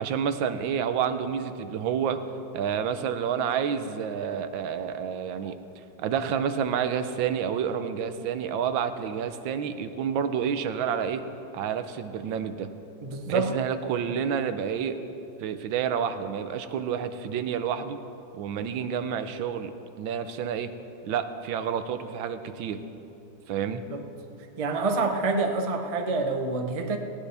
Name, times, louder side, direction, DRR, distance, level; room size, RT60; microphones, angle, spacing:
voice 1, 0.0-2.2 2.5-5.6 6.0-11.2 11.5-12.7 13.3-15.0 15.4-18.0 18.3-20.7 21.1-22.8 23.5-23.8, right 7 dB, 85° right, 10 dB, 1.5 m, -29 dB
voice 2, 13.0-13.5 23.9-24.0 24.6-27.0, right 3 dB, 35° right, 4 dB, 0.5 m, -27 dB
19.0 x 16.5 x 3.4 m, 2.8 s
omnidirectional pair, 2.0 m